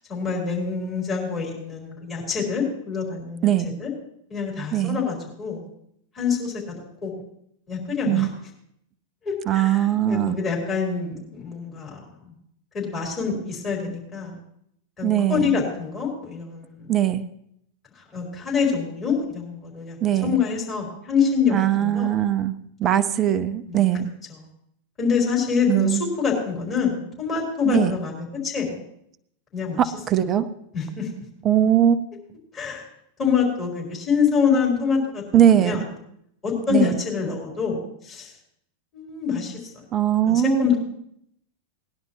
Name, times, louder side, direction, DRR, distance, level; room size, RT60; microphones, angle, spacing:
voice 1, 0.1-3.5 3.8-3.9 4.3-5.7 6.1-7.2 7.7-8.3 9.2-12.3 12.7-14.4 15.0-16.9 18.1-20.0 20.2-22.1 23.7-23.8 25.0-28.7 29.5-29.8 30.7-31.1 32.5-32.9 33.2-35.8 36.4-38.3 38.9-39.6 40.3-40.8, left 6 dB, 25° left, -4 dB, 4.6 m, -26 dB
voice 2, 3.4-3.7 4.7-5.0 8.0-8.3 9.5-10.4 15.0-15.6 16.9-17.3 20.0-20.4 21.5-24.1 25.7-26.1 27.6-27.9 29.8-30.5 31.4-32.0 35.3-35.8 36.7-36.9 39.9-40.7, right 11 dB, 30° right, 13 dB, 0.6 m, -20 dB
18.5 x 11.0 x 3.1 m, 0.72 s
figure-of-eight pair, 90°, 0 cm